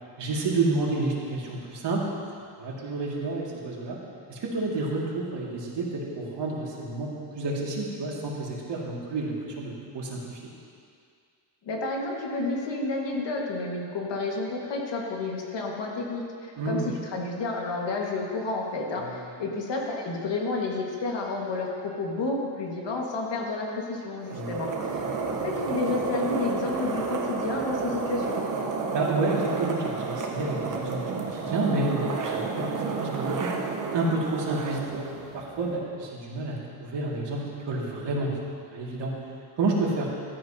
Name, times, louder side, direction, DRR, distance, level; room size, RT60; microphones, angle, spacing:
voice 1, 0.2-2.0 2.6-4.0 4.3-10.4 16.6-16.9 18.9-19.3 24.3-24.6 28.9-32.7 32.9-33.5 33.9-35.1 35.3-38.3 38.7-39.1 39.6-40.1, right 2 dB, 60° right, -4 dB, 2.5 m, -29 dB
voice 2, 11.6-25.0 25.4-28.4, left 3 dB, 60° left, -1 dB, 2.0 m, -30 dB
sound 1, 24.2-35.8, right 4 dB, 40° right, 1.2 m, -31 dB
15.5 x 12.5 x 2.9 m, 2.2 s
cardioid pair, 140°, 49 cm